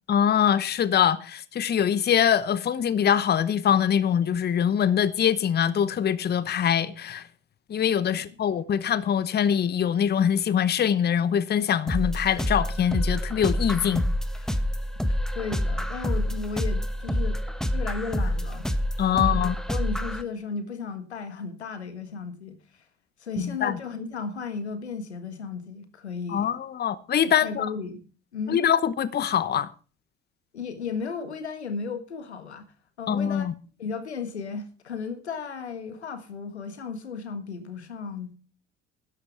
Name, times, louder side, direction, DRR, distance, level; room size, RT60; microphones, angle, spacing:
voice 1, 0.1-7.2 7.7-14.1 19.0-19.5 23.4-23.8 26.3-27.7 28.5-29.7 33.1-33.5, left 9 dB, 30° left, 0.9 m, -23 dB
sound 1, 11.9-20.2, equal, ahead, 1.2 m, -27 dB
voice 2, 15.1-18.7 19.1-22.8 23.2-26.6 27.3-28.0 28.3-28.6 30.5-32.7 33.0-33.5 33.8-38.3, left 5 dB, 85° left, 1.6 m, -35 dB
13.0 x 11.0 x 4.6 m
figure-of-eight pair, 60°, 32 cm